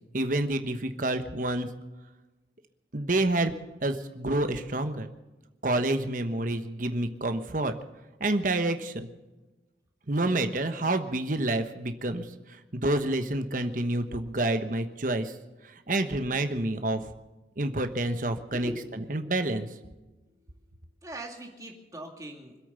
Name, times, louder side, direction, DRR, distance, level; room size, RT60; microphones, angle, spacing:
voice 1, 0.1-1.7 2.9-3.5 3.8-5.1 5.6-7.7 8.2-9.1 10.1-15.4 15.6-17.0 17.6-18.7 19.1-19.7, right 2 dB, 45° right, 8 dB, 1.2 m, -28 dB
voice 2, 18.5-19.2 21.0-22.6, right 1 dB, 20° right, 1 dB, 2.3 m, -40 dB
25.0 x 8.6 x 6.8 m, 1.1 s
head